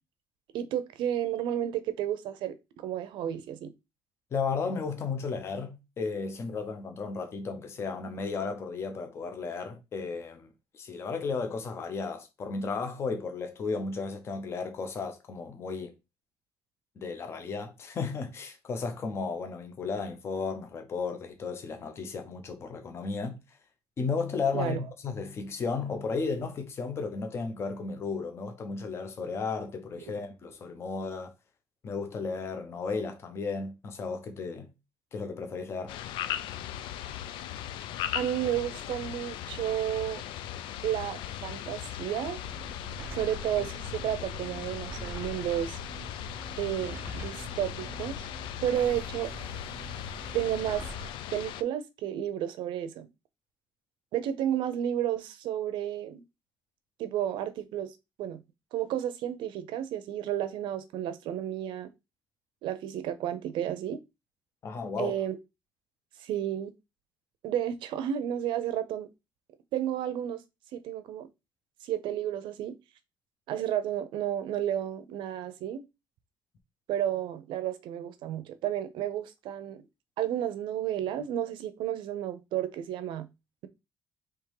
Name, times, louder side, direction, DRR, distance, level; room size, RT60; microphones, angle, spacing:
voice 1, 0.5-3.7 24.5-24.8 38.1-40.2 40.8-42.4 43.1-45.8 46.6-48.3 48.6-49.3 50.3-50.8 51.3-53.1 54.1-56.2 57.0-58.4 58.7-61.9 62.6-64.0 65.0-65.4 66.2-66.7 67.4-69.1 69.7-70.4 70.7-71.3 71.8-72.7 73.5-75.9 76.9-79.8 80.2-83.3, right 11 dB, 75° right, 0.7 m, -32 dB
voice 2, 4.3-15.9 17.0-23.4 24.0-31.3 31.8-34.7 35.1-35.9 64.6-65.2, left 4 dB, 30° left, 0.8 m, -34 dB
sound 1, 35.9-51.6, left 11 dB, 85° left, 0.4 m, -38 dB
sound 2, 42.4-51.1, right 3 dB, 25° right, 0.5 m, -44 dB
3.6 x 3.1 x 4.8 m
cardioid pair, 170°, 8 cm